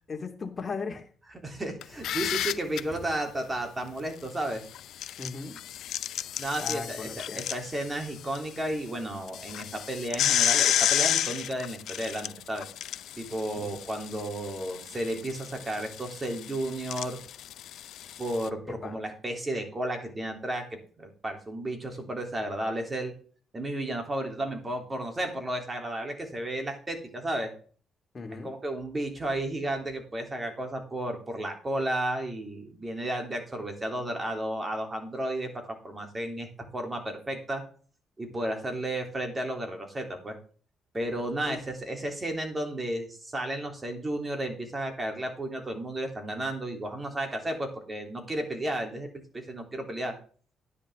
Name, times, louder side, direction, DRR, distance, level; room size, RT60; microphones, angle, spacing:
voice 1, 0.1-1.1 5.2-5.6 6.6-7.4 13.6-13.7 18.8-18.9 28.1-28.5 41.4-41.6, left 4 dB, 30° left, 2 dB, 2.4 m, -37 dB
voice 2, 1.4-4.6 6.4-12.7 13.2-17.2 18.2-20.7 21.0-23.1 23.5-27.5 28.4-37.6 38.2-40.4 40.9-49.1 49.3-50.2, right 1 dB, 25° right, 4 dB, 3.3 m, -33 dB
sound 1, 1.8-2.8 4.7-8.4 8.7-8.8 9.3-18.5, left 11 dB, 75° left, 0.5 m, -31 dB
11.0 x 10.0 x 3.7 m, 0.42 s
cardioid pair, 90°, 0 cm